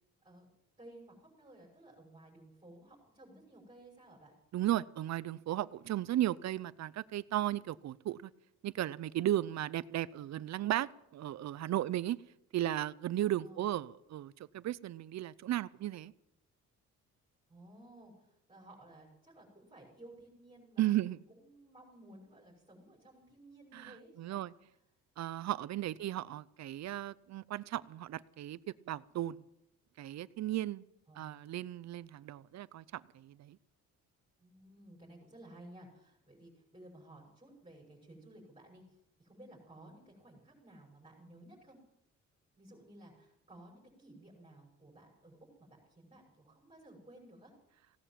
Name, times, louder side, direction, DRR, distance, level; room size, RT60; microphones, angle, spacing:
voice 1, 0.8-4.3 13.4-13.7 17.5-20.9 21.3-24.4 31.1-31.4 34.4-41.8 42.6-47.5, right 1 dB, 20° right, -4 dB, 6.3 m, -56 dB
voice 2, 4.5-8.3 8.6-12.2 12.5-16.1 20.8-21.2 23.7-24.5 25.2-28.6 28.9-29.4 30.0-30.8 31.2-33.6, right 13 dB, 60° right, 19 dB, 0.6 m, -35 dB
17.5 x 11.0 x 7.5 m, 0.83 s
cardioid pair, 90°, 30 cm